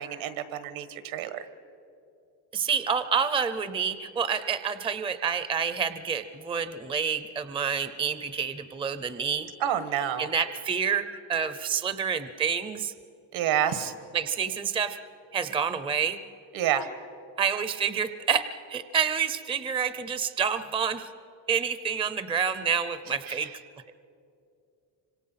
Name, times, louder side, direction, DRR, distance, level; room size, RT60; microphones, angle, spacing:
voice 1, 0.0-1.4 9.6-10.3 13.3-13.9 16.5-16.9 23.3-23.4, right 10 dB, 80° right, 11 dB, 1.7 m, -28 dB
voice 2, 2.5-9.5 10.2-12.9 14.1-15.0 15.3-16.2 17.4-18.4 18.7-21.1 21.5-23.5, right 7 dB, 10° right, 12 dB, 0.5 m, -28 dB
26.0 x 26.0 x 5.7 m, 2.6 s
cardioid pair, 170°, 47 cm